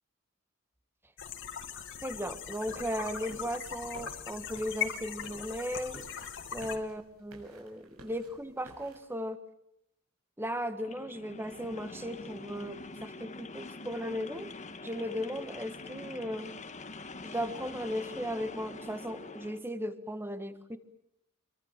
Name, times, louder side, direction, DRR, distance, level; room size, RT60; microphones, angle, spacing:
sound 1, 1.2-6.8, left 8 dB, 60° left, 2.5 m, -40 dB
voice 1, 2.0-6.1 6.5-9.4 10.4-14.5 14.8-16.5 17.2-20.8, equal, 10° right, 10 dB, 1.6 m, -36 dB
sound 2, 2.7-9.0, right 1 dB, 85° right, 6.6 m, -54 dB
sound 3, 10.8-19.6, left 3 dB, 35° left, 1.5 m, -45 dB
26.5 x 24.0 x 7.5 m, 0.78 s
head